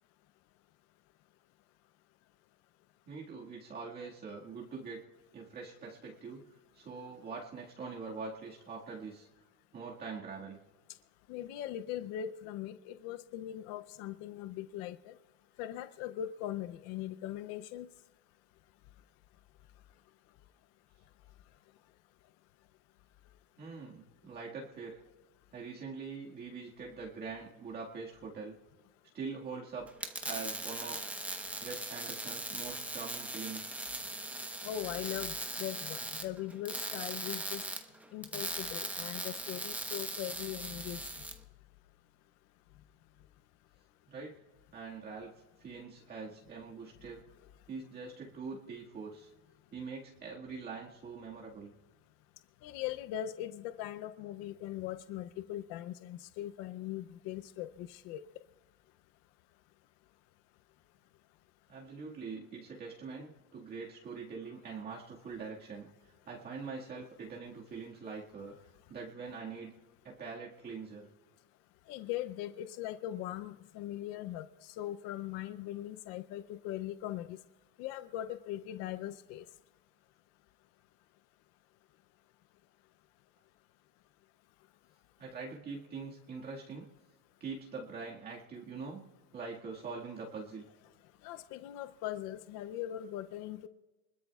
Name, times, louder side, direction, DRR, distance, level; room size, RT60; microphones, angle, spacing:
voice 1, 3.1-5.0 5.3-6.5 6.7-9.3 9.7-10.6 23.6-25.0 25.5-28.6 29.1-29.9 30.2-31.0 31.6-33.8 44.1-44.4 44.7-45.3 45.6-47.2 47.7-49.3 49.7-51.7 61.7-68.6 68.9-69.7 70.0-71.1 85.2-86.9 87.4-89.0 89.3-90.6, right 4 dB, 25° right, -3 dB, 1.9 m, -43 dB
voice 2, 11.3-15.1 15.6-17.9 34.6-37.6 38.1-41.0 52.6-58.2 71.9-77.4 77.8-79.4 91.2-93.7, left 12 dB, 45° left, 10 dB, 0.6 m, -40 dB
sound 1, 29.9-41.3, right 2 dB, 5° right, 0.9 m, -39 dB
27.5 x 21.0 x 2.4 m, 1.1 s
supercardioid pair, 150°, 35 cm